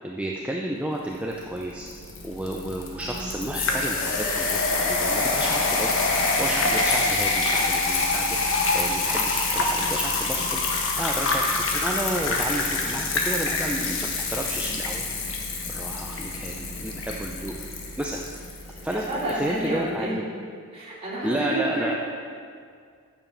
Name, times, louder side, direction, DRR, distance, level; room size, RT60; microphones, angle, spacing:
voice 1, 0.0-1.9 2.2-6.0 6.3-15.1 15.7-17.6 18.0-18.2 18.8-20.1 21.2-21.9, right 1 dB, 5° right, -1 dB, 0.5 m, -31 dB
sound 1, 1.4-19.4, left 3 dB, 60° left, 1.4 m, -26 dB
voice 2, 2.9-3.4 13.5-13.9 15.9-16.1 18.7-20.3 20.7-21.9, right 1 dB, 25° right, -8 dB, 2.5 m, -31 dB
8.6 x 7.1 x 7.1 m, 2.2 s
head